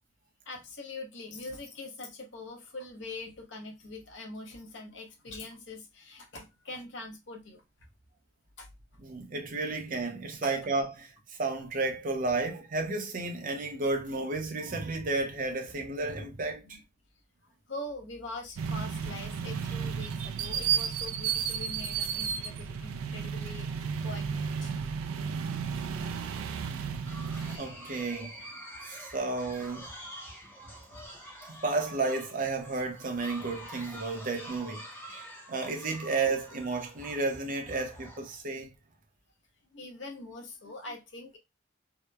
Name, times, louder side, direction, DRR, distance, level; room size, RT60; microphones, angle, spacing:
voice 1, 0.5-7.6 8.6-8.7 10.4-10.5 16.6-16.8 17.7-24.7 39.7-41.4, left 2 dB, 60° left, 0.7 m, -43 dB
voice 2, 9.0-16.8 27.6-28.3 28.9-29.9 30.9-31.0 31.5-34.9 35.5-38.7, right 3 dB, 40° right, 0.6 m, -32 dB
sound 1, 18.6-27.6, right 7 dB, 85° right, 0.3 m, -33 dB
sound 2, 27.0-38.4, equal, 10° left, 0.6 m, -47 dB
2.8 x 2.0 x 2.2 m
head